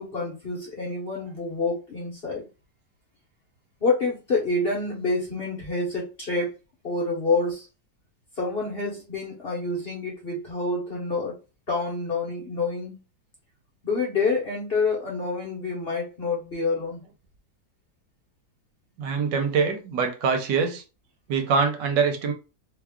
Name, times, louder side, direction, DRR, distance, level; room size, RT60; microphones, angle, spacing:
voice 1, 0.0-2.5 3.8-6.5 6.8-7.7 8.4-11.4 11.7-13.0 13.8-17.0, left 3 dB, 45° left, 0.9 m, -27 dB
voice 2, 19.0-20.8 21.3-22.3, right 5 dB, 75° right, 1.3 m, -24 dB
3.0 x 2.3 x 3.5 m
omnidirectional pair, 1.9 m